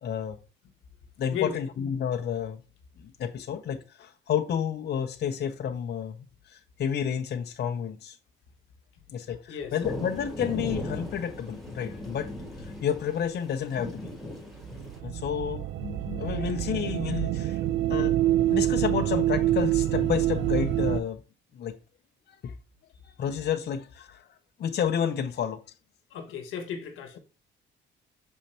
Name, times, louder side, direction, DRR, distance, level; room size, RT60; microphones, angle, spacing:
voice 1, 0.0-0.4 1.2-2.6 3.0-8.2 9.1-12.3 12.6-14.1 15.0-18.2 18.5-21.2 21.5-21.7 22.3-22.5 23.0-24.3 24.6-25.6, left 8 dB, 55° left, 0.7 m, -30 dB
sound 1, 9.8-15.0, left 1 dB, ahead, 2.3 m, -38 dB
sound 2, 14.6-21.0, right 13 dB, 75° right, 0.4 m, -26 dB
voice 2, 26.1-27.2, left 7 dB, 90° left, 1.2 m, -34 dB
6.4 x 5.3 x 2.8 m
cardioid pair, 90°, 20 cm